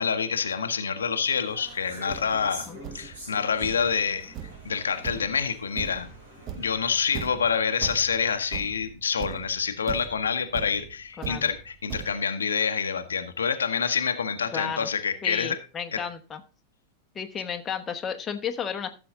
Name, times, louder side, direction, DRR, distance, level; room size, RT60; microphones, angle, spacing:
voice 1, 0.0-2.7 2.9-4.3 4.6-6.1 6.6-15.6 15.9-16.0, left 6 dB, 70° left, 7 dB, 1.0 m, -27 dB
sound 1, 1.3-6.7, equal, 65° right, 4.9 m, -45 dB
Thump thud, 1.7-1.8 2.1-12.1, right 9 dB, 35° right, 1.0 m, -40 dB
voice 2, 11.2-11.5 14.5-14.9 15.2-16.4 17.1-18.9, left 7 dB, 20° left, 5 dB, 1.2 m, -33 dB
14.0 x 7.0 x 3.7 m, 0.33 s
figure-of-eight pair, 90°, 0 cm